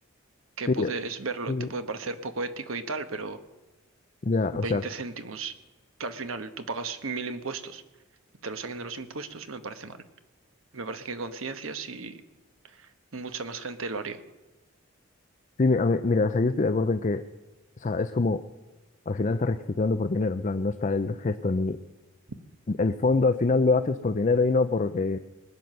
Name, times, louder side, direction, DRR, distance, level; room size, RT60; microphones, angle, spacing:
voice 1, 0.6-3.4 4.5-5.5 6.0-7.8 8.4-10.0 10.7-12.2 12.6-14.2, right 3 dB, 80° right, 9 dB, 1.1 m, -35 dB
voice 2, 4.2-4.8 15.6-17.2 17.8-18.4 19.1-21.8 22.7-25.2, left 3 dB, 35° left, 9 dB, 0.5 m, -24 dB
20.0 x 9.4 x 6.7 m, 1.2 s
head